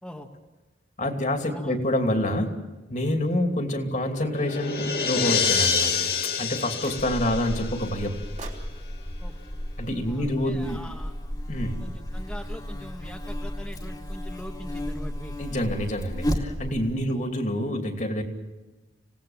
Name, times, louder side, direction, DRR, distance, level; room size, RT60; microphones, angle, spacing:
voice 1, 1.0-2.5 2.9-6.1 6.4-8.2 9.8-10.8 11.5-11.8 15.4-18.2, left 1 dB, 45° left, 4 dB, 2.7 m, -27 dB
sound 1, 3.9-8.4, left 6 dB, 60° left, 2.4 m, -27 dB
sound 2, 6.8-7.4 8.4-10.6, right 3 dB, 40° right, 3.3 m, -47 dB
Buzz, 7.0-16.9, equal, 25° left, 2.3 m, -33 dB
voice 2, 10.1-11.1 11.8-15.3 17.1-17.2, left 1 dB, 5° left, 0 dB, 1.5 m, -42 dB
27.0 x 18.0 x 7.3 m, 1.1 s
head